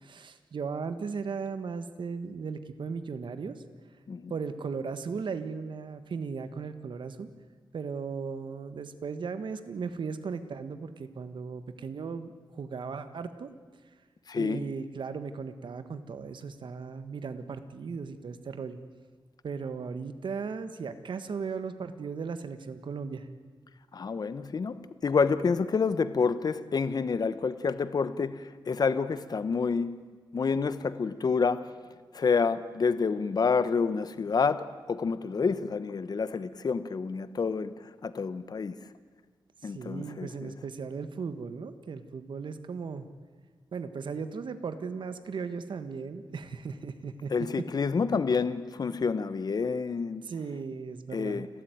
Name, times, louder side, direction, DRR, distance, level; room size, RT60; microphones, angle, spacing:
voice 1, 0.0-3.6 4.3-7.3 7.7-13.5 14.4-18.8 19.4-23.3 39.6-43.1 43.7-47.7 50.2-51.4, right 5 dB, 70° right, 1.5 m, -37 dB
voice 2, 14.3-14.6 23.9-30.0 30.3-31.7 32.1-38.7 39.6-40.5 47.3-50.2 51.1-51.5, left 5 dB, 50° left, 1.0 m, -28 dB
29.0 x 13.0 x 9.3 m
wide cardioid pair, 115°, 9 cm